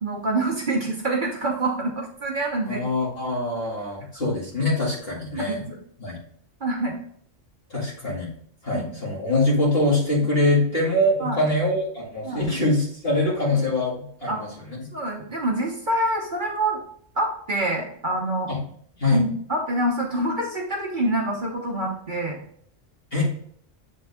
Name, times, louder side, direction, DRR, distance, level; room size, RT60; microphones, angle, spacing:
voice 1, 0.0-2.8 5.3-5.8 6.6-6.9 8.7-8.9 11.2-11.5 12.2-12.5 13.5-13.6 14.3-14.4 14.9-16.8 17.1-18.5 19.1-22.4, right 1 dB, 45° right, -1 dB, 1.1 m, -26 dB
voice 2, 2.7-5.6 6.0-6.2 7.7-8.3 8.6-14.8 18.5-18.6 19.0-19.2 23.1-23.5, left 2 dB, 50° left, -5 dB, 2.6 m, -24 dB
7.8 x 3.9 x 3.5 m, 0.62 s
omnidirectional pair, 1.3 m